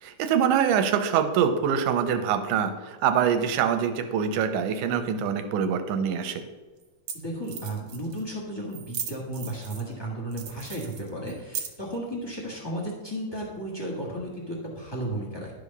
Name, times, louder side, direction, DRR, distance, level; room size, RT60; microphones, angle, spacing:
voice 1, 0.0-6.4, right 8 dB, 85° right, 8 dB, 2.3 m, -24 dB
sound 1, 6.0-6.1 6.8-6.9 7.1-7.2 7.4-8.2 8.7-9.9 10.3-11.9, right 7 dB, 60° right, 1.6 m, -37 dB
voice 2, 7.1-15.5, right 1 dB, 20° left, -3 dB, 0.7 m, -34 dB
11.5 x 4.9 x 5.4 m, 1.3 s
omnidirectional pair, 3.5 m